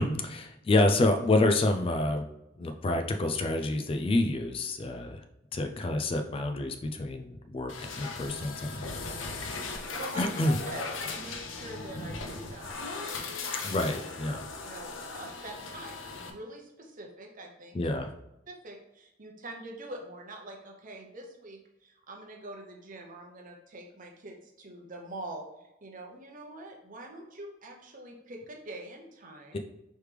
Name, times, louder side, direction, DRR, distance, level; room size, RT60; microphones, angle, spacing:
voice 1, 0.0-2.3 2.6-5.2 5.5-9.2 10.2-10.6 13.6-14.5 17.7-18.1 29.5-29.6, left 2 dB, 30° left, 6 dB, 0.3 m, -28 dB
sound 1, 7.7-16.3, left 4 dB, 80° left, 0.6 m, -38 dB
voice 2, 9.1-10.2 10.7-13.3 14.6-17.8 18.5-29.6, right 2 dB, 45° right, 2 dB, 0.8 m, -45 dB
4.8 x 3.2 x 3.3 m, 0.90 s
head